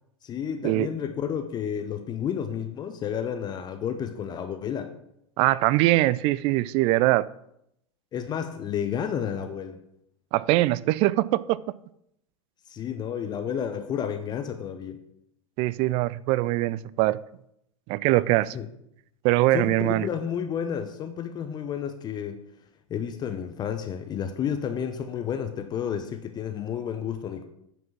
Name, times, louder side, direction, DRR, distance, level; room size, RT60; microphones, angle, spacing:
voice 1, 0.2-4.9 8.1-9.8 12.7-15.0 18.5-18.7 19.5-22.4 22.9-27.4, left 8 dB, 25° left, 0.7 m, -31 dB
voice 2, 5.4-7.3 10.3-11.6 15.6-17.2 17.9-18.6 19.2-20.1, right 17 dB, 35° right, 0.4 m, -22 dB
8.9 x 6.0 x 6.1 m
figure-of-eight pair, 90°, 16 cm